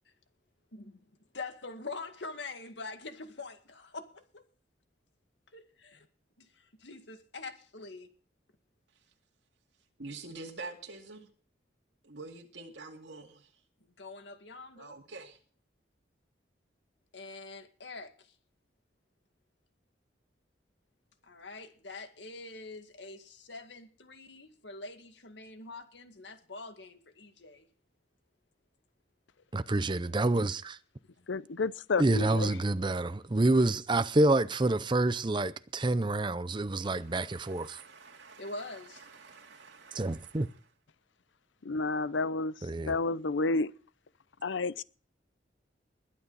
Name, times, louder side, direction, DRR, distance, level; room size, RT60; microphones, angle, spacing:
voice 1, 0.7-1.0 1.3-4.4 5.5-6.1 6.4-8.1 13.8-15.0 17.1-18.3 21.2-27.7 31.2-31.3 38.4-39.1, left 3 dB, 70° left, 2.0 m, -45 dB
voice 2, 10.0-11.3 12.0-13.5 14.8-15.4 37.0-40.6, right 3 dB, 70° right, 2.4 m, -47 dB
voice 3, 29.5-30.8 32.0-37.8 39.9-40.5 42.6-42.9, right 2 dB, 25° right, 0.6 m, -28 dB
voice 4, 31.3-32.5 41.6-42.5 42.9-43.7 44.4-44.8, left 3 dB, 90° left, 0.7 m, -30 dB
21.5 x 9.6 x 4.1 m
head